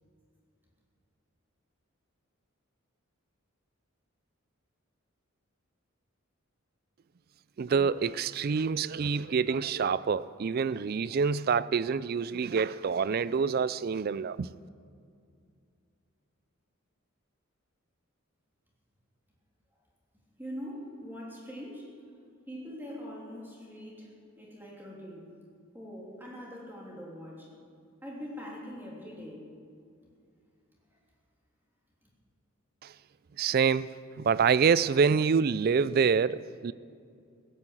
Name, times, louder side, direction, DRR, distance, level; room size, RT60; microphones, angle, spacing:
voice 1, 7.6-14.5 32.8-32.9 33.4-33.9 34.2-36.7, right 6 dB, 45° right, 0.3 m, -26 dB
voice 2, 20.4-21.9 22.5-24.1 24.3-25.2 25.7-27.5 28.0-29.5, equal, 10° right, 3.1 m, -42 dB
16.0 x 9.7 x 7.8 m
head